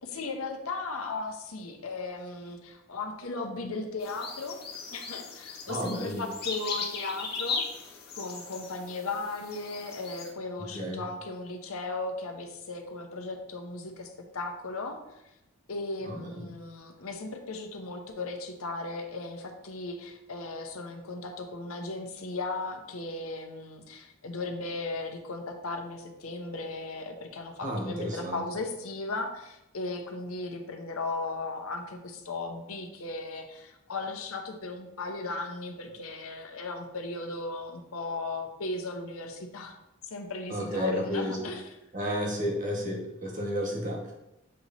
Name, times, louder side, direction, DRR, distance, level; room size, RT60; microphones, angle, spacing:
voice 1, 0.0-4.6 4.9-15.0 15.7-39.8 40.0-41.8, left 3 dB, 85° left, 4 dB, 0.9 m, -36 dB
sound 1, 4.0-10.3, left 4 dB, 50° left, 0.9 m, -38 dB
voice 2, 5.7-6.2 10.7-11.0 16.1-16.3 27.6-28.4 40.5-41.4 41.9-44.1, equal, 35° right, 0 dB, 1.3 m, -32 dB
7.4 x 3.0 x 4.2 m, 0.89 s
head